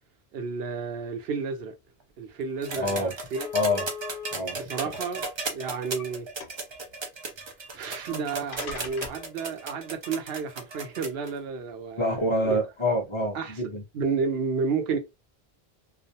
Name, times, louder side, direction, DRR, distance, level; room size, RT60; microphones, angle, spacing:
voice 1, 0.3-1.7 2.2-3.5 4.5-6.3 7.7-12.2 12.4-12.6 13.3-13.6 13.9-15.0, right 5 dB, 75° right, 0.8 m, -31 dB
sound 1, 2.3-2.4 2.7-2.8 3.4-4.3 5.2-6.1 6.4-6.8 7.9-8.0 8.5-9.3, left 6 dB, 65° left, 0.9 m, -39 dB
sound 2, 2.6-11.3 12.5-12.6, right 3 dB, 40° right, 0.4 m, -36 dB
voice 2, 2.8-3.1 3.5-3.8 4.3-4.6 12.0-13.8, left 1 dB, 35° left, 0.6 m, -26 dB
2.4 x 2.1 x 2.6 m
omnidirectional pair, 1.0 m